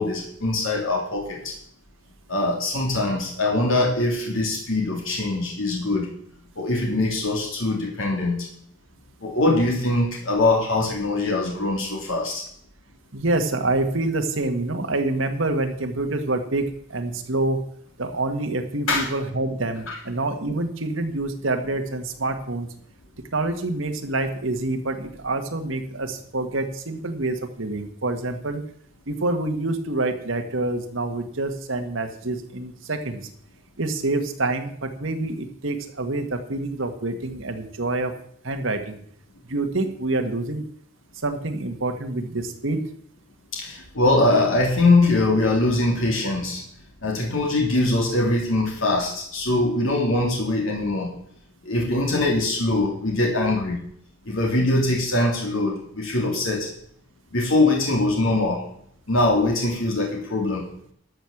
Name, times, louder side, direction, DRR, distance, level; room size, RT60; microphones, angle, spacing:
voice 1, 0.0-1.5 2.3-6.1 6.6-8.5 9.2-12.4 18.9-19.1 19.9-20.0 43.5-46.6 47.0-51.1 51.6-53.8 54.3-56.7 57.3-58.6 59.1-60.7, left 2 dB, 90° left, -1 dB, 2.9 m, -22 dB
voice 2, 13.1-16.6 16.9-17.6 18.0-22.7 23.3-28.6 29.1-33.3 33.8-38.1 38.4-39.0 39.5-40.6 41.2-42.8, right 2 dB, 80° right, 5 dB, 1.7 m, -26 dB
13.0 x 6.4 x 7.2 m, 0.65 s
head